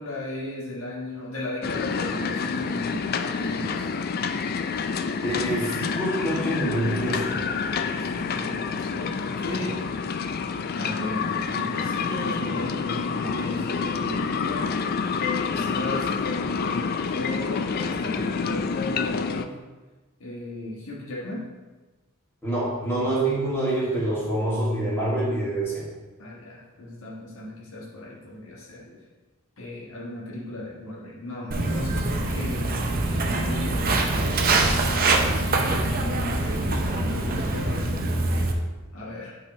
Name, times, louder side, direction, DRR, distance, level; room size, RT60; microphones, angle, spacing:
voice 1, 0.0-3.9 7.9-9.9 10.7-14.8 15.5-19.5 20.2-21.5 26.2-29.0 29.6-32.6 33.3-37.9 38.9-39.4, left 1 dB, 75° left, -5 dB, 1.4 m, -36 dB
sound 1, 1.6-19.5, left 5 dB, 45° left, 0.3 m, -28 dB
voice 2, 5.2-7.4 22.4-25.8, right 1 dB, 10° left, -8 dB, 2.2 m, -26 dB
Walk footsteps, 31.5-38.5, right 2 dB, 45° right, 0.7 m, -24 dB
8.6 x 4.8 x 3.2 m, 1.2 s
head